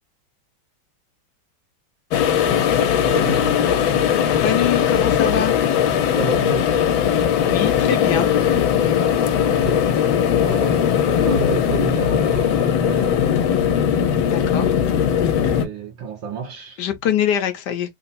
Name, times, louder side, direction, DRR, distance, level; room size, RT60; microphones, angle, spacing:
sound 1, 2.1-15.6, left 9 dB, 80° left, 1.5 m, -19 dB
voice 1, 3.1-3.6 5.6-5.8 6.2-6.9 9.4-9.9 10.4-13.4 14.0-14.7 15.0-16.8, right 4 dB, 70° right, 1.4 m, -30 dB
voice 2, 4.4-5.5 7.4-8.3 14.2-14.7 16.8-18.0, left 9 dB, 65° left, 1.2 m, -23 dB
3.7 x 2.0 x 4.0 m
omnidirectional pair, 2.2 m